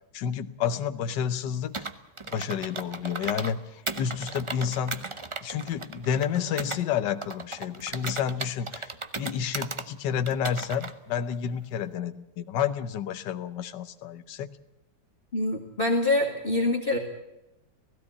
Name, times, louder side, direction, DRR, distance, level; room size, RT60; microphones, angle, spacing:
voice 1, 0.1-1.9 2.3-5.0 5.4-14.5, left 8 dB, 70° left, 10 dB, 1.5 m, -30 dB
Computer keyboard, 1.7-3.5 3.9-6.8 7.2-9.9 10.3-10.9, right 3 dB, 30° right, 0.5 m, -36 dB
voice 2, 15.3-17.0, left 2 dB, 30° left, 2 dB, 2.2 m, -25 dB
17.0 x 16.0 x 9.7 m, 0.92 s
omnidirectional pair, 2.0 m